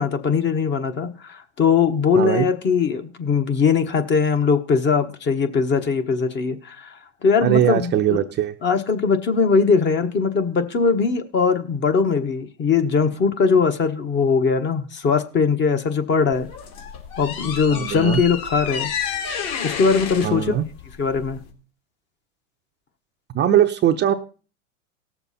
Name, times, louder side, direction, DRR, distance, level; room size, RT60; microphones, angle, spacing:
voice 1, 0.0-8.2 8.6-16.5 17.2-18.9 19.6-20.5 21.0-21.4, left 5 dB, 25° left, 1.2 m, -20 dB
voice 2, 2.2-2.5 7.4-8.5 17.7-18.2 20.2-20.6 23.3-24.1, right 10 dB, 25° right, 0.7 m, -20 dB
sound 1, 16.3-21.5, left 7 dB, 50° left, 2.9 m, -30 dB
17.5 x 7.0 x 4.2 m
hypercardioid pair, 110°, 40 cm